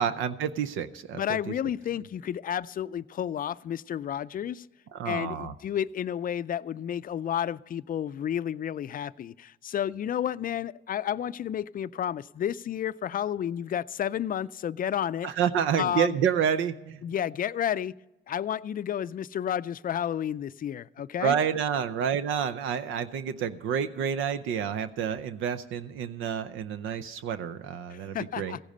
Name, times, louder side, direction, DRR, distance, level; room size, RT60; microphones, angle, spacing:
voice 1, 0.0-1.5 4.9-5.5 15.2-17.0 21.2-28.6, right 8 dB, 85° right, 0.6 m, -29 dB
voice 2, 1.1-4.7 5.1-15.3 15.8-16.1 17.0-17.9 18.3-21.4 27.9-28.6, left 9 dB, 45° left, 0.4 m, -31 dB
15.5 x 10.0 x 5.4 m
cardioid pair, 90°, 20 cm